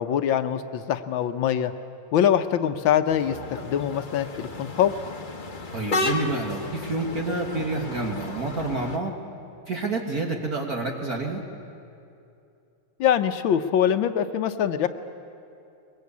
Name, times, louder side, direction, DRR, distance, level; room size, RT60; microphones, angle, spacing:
voice 1, 0.0-1.7 2.1-3.4 3.6-4.9 13.0-14.9, left 9 dB, 70° left, 10 dB, 1.5 m, -23 dB
sound 1, 3.1-9.0, left 3 dB, 30° left, 1.0 m, -33 dB
voice 2, 5.7-9.1 9.7-11.4, right 3 dB, 45° right, 1 dB, 1.9 m, -28 dB
22.5 x 21.5 x 8.3 m, 2.6 s
omnidirectional pair, 2.4 m